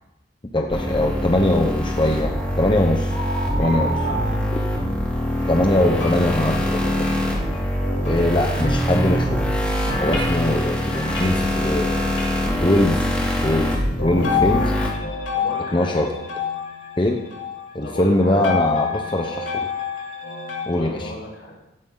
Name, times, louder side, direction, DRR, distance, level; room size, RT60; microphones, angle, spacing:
voice 1, 0.5-3.1 3.6-4.0 5.5-7.1 8.0-9.4 10.0-12.0 12.6-13.1 13.4-13.7 14.0-14.7 15.7-16.1 17.0-17.2 17.7-19.5 20.7-21.1, left 1 dB, 25° left, 2 dB, 1.0 m, -21 dB
sound 1, 0.7-14.9, equal, 5° left, 3.0 m, -23 dB
sound 2, 2.3-2.6 3.1-5.1, right 2 dB, 40° right, 6.1 m, -30 dB
voice 2, 3.5-4.5 15.3-16.0 17.8-18.5 20.7-21.6, left 1 dB, 65° left, -2 dB, 4.7 m, -35 dB
sound 3, 5.4-9.2 9.9-12.5 13.0-13.3 14.0-20.7, left 5 dB, 85° left, 3.6 m, -29 dB
16.5 x 14.5 x 4.0 m, 0.94 s
head